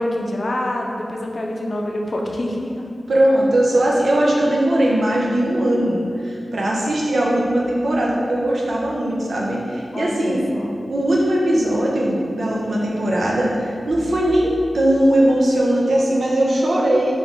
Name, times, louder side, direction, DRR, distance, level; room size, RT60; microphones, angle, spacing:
voice 1, 0.0-2.9 9.9-10.8, left 1 dB, 55° left, 0 dB, 0.4 m, -26 dB
voice 2, 3.1-10.4 10.9-17.1, right 1 dB, 80° right, -3 dB, 0.6 m, -19 dB
3.4 x 2.5 x 3.7 m, 2.4 s
wide cardioid pair, 70°, 0 cm